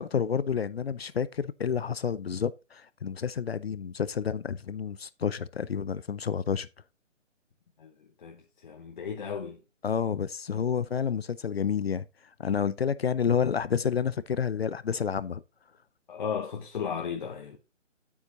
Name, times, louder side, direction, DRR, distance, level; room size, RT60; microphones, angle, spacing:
voice 1, 0.0-6.7 9.8-12.0 12.4-15.4, left 7 dB, 55° left, 0.6 m, -29 dB
voice 2, 7.8-9.6 16.1-17.6, left 7 dB, 35° left, 1.3 m, -35 dB
9.5 x 8.5 x 2.9 m
figure-of-eight pair, 155°, 38 cm